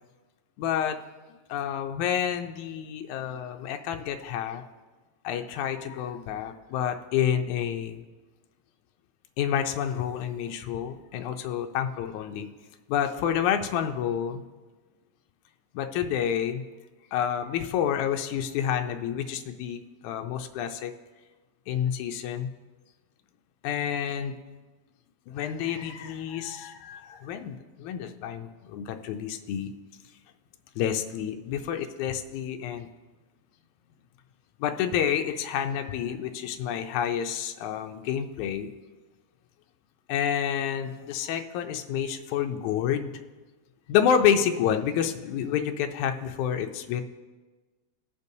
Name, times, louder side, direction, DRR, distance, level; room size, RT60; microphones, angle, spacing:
voice 1, 0.6-1.0 1.5-4.6 5.2-8.0 9.4-12.5 12.9-14.4 15.7-16.6 17.1-20.9 21.7-22.5 23.6-24.4 25.3-29.7 30.8-32.9 34.6-38.7 40.1-43.1 43.9-47.0, left 9 dB, 85° left, 5 dB, 2.0 m, -29 dB
19.5 x 6.7 x 2.7 m, 1.3 s
omnidirectional pair, 3.4 m